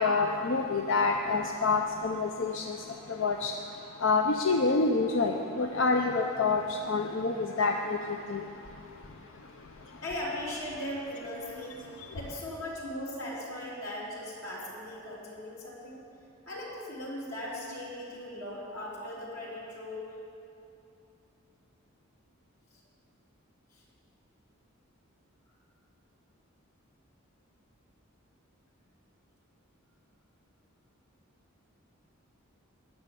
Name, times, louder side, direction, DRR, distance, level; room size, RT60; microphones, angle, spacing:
voice 1, 0.0-2.7 3.2-3.5 4.0-6.6 6.9-8.0 8.3-8.4, left 4 dB, 60° left, 3 dB, 0.6 m, -27 dB
voice 2, 10.0-11.8 12.1-16.0 16.5-20.1 23.7-23.8, left 1 dB, 90° left, -5 dB, 3.5 m, -38 dB
13.0 x 6.6 x 9.8 m, 2.8 s
head